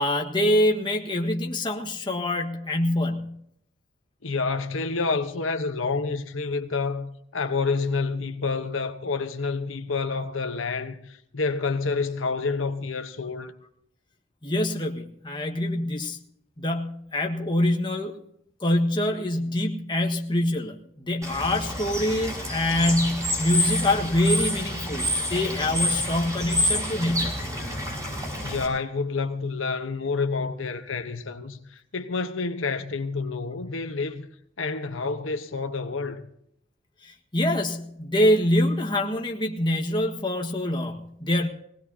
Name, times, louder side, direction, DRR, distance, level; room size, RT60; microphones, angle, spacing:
voice 1, 0.0-3.4 14.4-16.2 16.6-18.2 18.6-27.4 37.0-41.5, left 1 dB, 25° left, 1.6 m, -25 dB
voice 2, 4.2-13.5 28.4-34.3 34.6-36.2, left 4 dB, 85° left, 1.1 m, -28 dB
Bird / Water, 21.2-28.7, left 1 dB, 15° right, 5.5 m, -28 dB
21.5 x 18.5 x 2.8 m
head